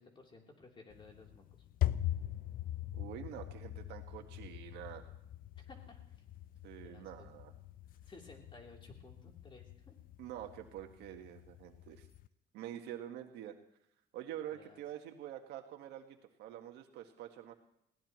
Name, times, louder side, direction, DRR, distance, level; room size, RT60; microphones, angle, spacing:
voice 1, 0.0-1.6 5.6-6.2 6.8-7.3 8.1-9.9 14.5-14.8, left 3 dB, 30° left, 0 dB, 3.5 m, -56 dB
sound 1, 0.9-12.3, left 13 dB, 55° left, 0.5 m, -42 dB
voice 2, 2.9-5.1 6.6-7.5 10.2-12.1 12.5-13.6 14.1-17.5, right 11 dB, 85° right, 5 dB, 1.7 m, -46 dB
21.0 x 17.5 x 3.1 m, 0.75 s
cardioid pair, 110°, 17 cm